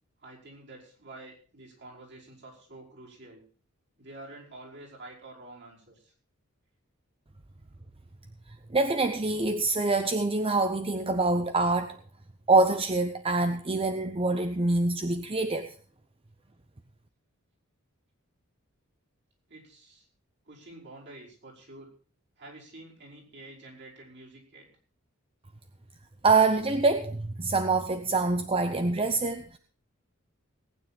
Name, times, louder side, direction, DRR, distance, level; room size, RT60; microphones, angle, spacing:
voice 1, 0.2-3.4 4.0-6.1 19.5-20.1 20.5-21.9 22.4-24.7, right 2 dB, 55° right, -3 dB, 5.2 m, -48 dB
voice 2, 8.7-12.0 12.5-15.7 26.2-29.6, right 3 dB, 25° right, 8 dB, 0.7 m, -25 dB
19.0 x 9.3 x 4.4 m, 0.41 s
head